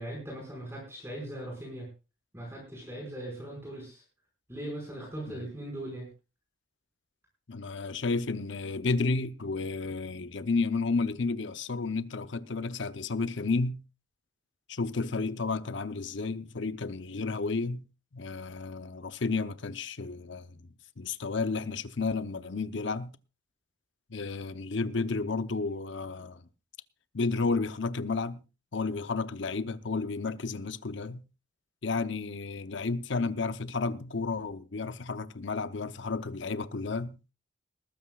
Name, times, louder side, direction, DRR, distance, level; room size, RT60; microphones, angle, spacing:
voice 1, 0.0-1.9 2.3-4.0 4.5-6.0, right 1 dB, 15° right, 5.3 m, -39 dB
voice 2, 7.5-13.8 14.7-17.9 18.1-20.6 21.0-23.2 24.1-26.4 27.1-28.4 28.7-31.2 31.8-37.2, left 4 dB, 70° left, 0.8 m, -32 dB
20.5 x 14.0 x 2.4 m
head